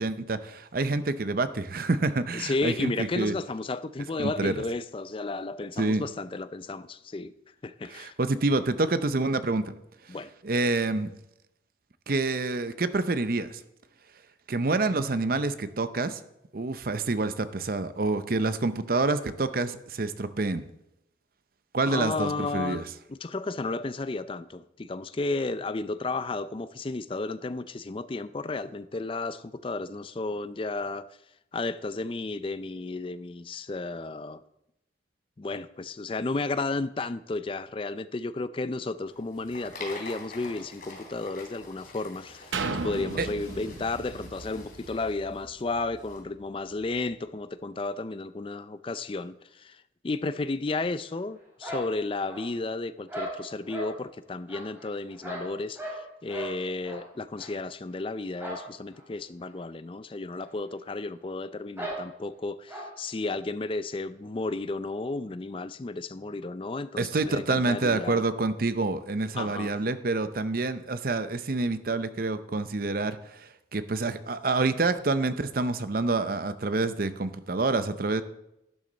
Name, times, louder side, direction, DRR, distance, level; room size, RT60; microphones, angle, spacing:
voice 1, 0.0-3.3 4.2-4.6 5.8-6.0 7.9-9.7 10.4-11.1 12.1-13.6 14.5-16.2 16.5-20.6 21.7-22.8 43.2-43.3 67.0-78.2, right 3 dB, 50° right, 0.6 m, -27 dB
voice 2, 2.3-7.3 7.6-8.1 10.1-10.3 21.8-31.1 31.5-34.4 35.4-42.6 42.8-68.2 69.3-69.7, left 3 dB, 30° left, 0.4 m, -33 dB
sound 1, 39.0-46.2, left 2 dB, 50° left, 3.2 m, -46 dB
sound 2, 42.5-46.3 46.8-46.9, right 3 dB, 85° right, 0.9 m, -36 dB
sound 3, 51.6-52.7 53.1-53.9 54.5-56.0 56.3-56.5 56.8-57.0 57.4-57.5 58.4-58.7 58.9-59.0 59.4-59.5 60.4-60.5 60.7-60.8 61.8-62.0 62.7-62.9, right 1 dB, 15° right, 3.8 m, -37 dB
12.0 x 10.5 x 4.0 m
head